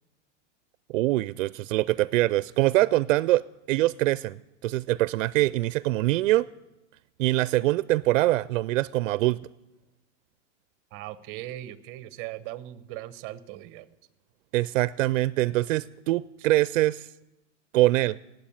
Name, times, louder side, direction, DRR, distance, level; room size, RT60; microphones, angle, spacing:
voice 1, 0.9-4.4 4.6-6.5 7.2-9.4 14.5-17.1 17.7-18.2, right 17 dB, 80° right, 19 dB, 0.5 m, -24 dB
voice 2, 10.9-13.9 16.4-16.5, right 14 dB, 35° right, 16 dB, 0.8 m, -39 dB
18.5 x 7.9 x 8.7 m, 0.95 s
supercardioid pair, 150°, 38 cm